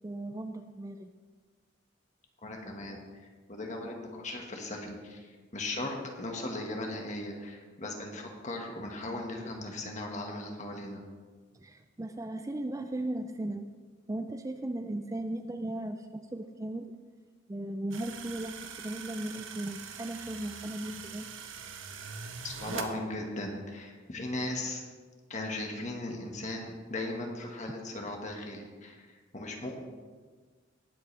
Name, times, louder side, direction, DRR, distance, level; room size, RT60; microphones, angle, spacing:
voice 1, 0.0-1.1 11.5-13.6 14.1-16.9 17.5-21.3, right 1 dB, 15° right, 7 dB, 0.4 m, -37 dB
voice 2, 2.4-11.0 22.4-24.8 25.3-29.8, left 2 dB, 35° left, 1 dB, 1.7 m, -38 dB
sound 1, 17.9-22.9, right 6 dB, 85° right, 1.1 m, -42 dB
19.5 x 7.9 x 3.4 m, 1.5 s
head